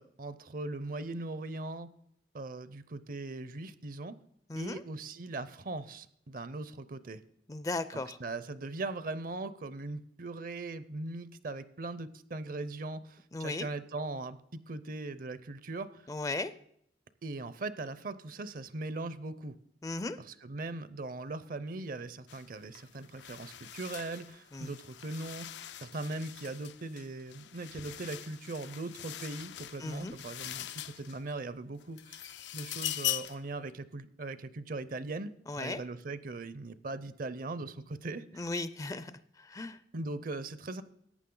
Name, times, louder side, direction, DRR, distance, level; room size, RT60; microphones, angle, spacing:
voice 1, 0.0-1.9 2.3-4.1 4.6-7.2 7.9-14.4 14.7-16.1 17.2-19.6 20.2-35.3 35.6-38.4 39.9-40.8, right 2 dB, 50° right, 15 dB, 0.6 m, -40 dB
voice 2, 4.5-4.8 7.5-8.2 13.3-13.7 16.1-16.5 19.8-20.2 24.5-24.7 29.8-30.2 35.5-35.8 38.4-39.8, left 2 dB, 20° left, 14 dB, 0.4 m, -36 dB
sound 1, 22.3-22.5 22.8-31.4 31.8-33.5, left 13 dB, 80° left, 0.5 m, -41 dB
14.5 x 9.1 x 3.8 m, 0.71 s
head